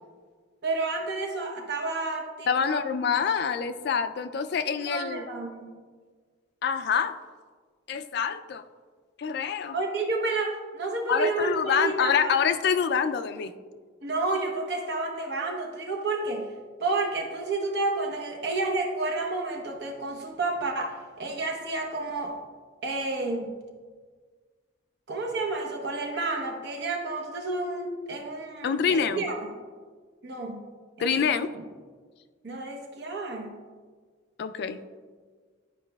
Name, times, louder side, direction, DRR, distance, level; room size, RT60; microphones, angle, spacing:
voice 1, 0.6-2.9 3.1-3.2 4.8-5.8 9.7-12.3 14.0-16.5 16.8-22.4 22.8-23.5 25.1-29.5 30.2-30.7 31.0-31.2 31.5-31.6 32.4-33.6, right 3 dB, 60° right, 1 dB, 0.9 m, -30 dB
voice 2, 2.5-5.2 6.6-7.1 7.9-8.6 9.2-9.8 11.1-13.5 28.6-29.2 31.0-31.5 34.4-34.8, left 6 dB, 55° left, 10 dB, 0.3 m, -26 dB
9.7 x 4.8 x 2.2 m, 1.6 s
head